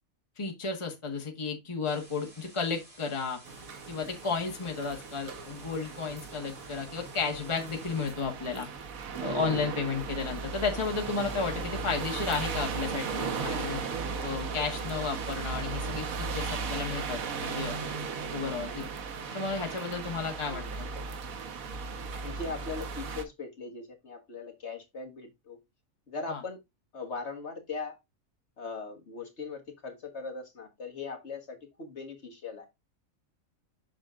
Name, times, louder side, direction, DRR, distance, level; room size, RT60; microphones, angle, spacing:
voice 1, 0.4-3.4 3.9-8.7 9.2-13.8 14.2-17.8 18.3-18.9 19.3-20.9 26.3-26.4, left 5 dB, 20° left, 1.4 m, -33 dB
sound 1, 1.8-8.1, right 1 dB, 40° right, 2.8 m, -54 dB
sound 2, 3.5-23.2, right 5 dB, 80° right, 1.4 m, -36 dB
voice 2, 22.2-25.6 26.1-26.6 26.9-28.0 28.6-32.7, left 4 dB, 55° left, 1.7 m, -39 dB
7.5 x 6.4 x 2.4 m
omnidirectional pair, 1.4 m